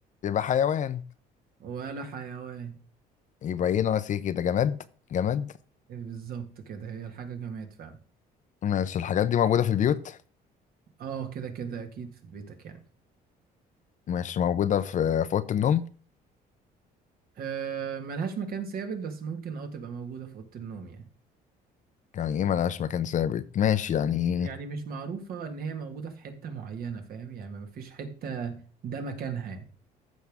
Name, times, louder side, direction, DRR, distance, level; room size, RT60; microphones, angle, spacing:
voice 1, 0.2-1.0 3.4-4.8 5.1-5.5 8.6-10.2 14.1-15.8 22.1-24.5, left 9 dB, 50° left, 0.7 m, -26 dB
voice 2, 1.6-2.8 5.9-8.0 11.0-12.8 17.4-21.1 24.0-29.7, right 6 dB, 60° right, 1.9 m, -37 dB
14.5 x 5.5 x 3.6 m
cardioid pair, 110°, 17 cm